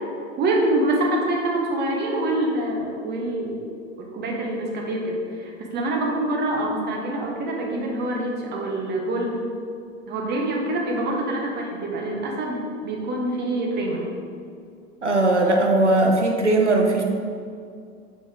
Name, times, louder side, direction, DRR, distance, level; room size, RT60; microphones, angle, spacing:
voice 1, 0.4-3.6 4.0-9.3 10.1-14.0, right 1 dB, 30° right, -1 dB, 1.2 m, -25 dB
voice 2, 15.0-17.0, right 2 dB, 90° right, 2 dB, 0.9 m, -19 dB
7.0 x 5.5 x 3.6 m, 2.3 s
figure-of-eight pair, 85°, 34 cm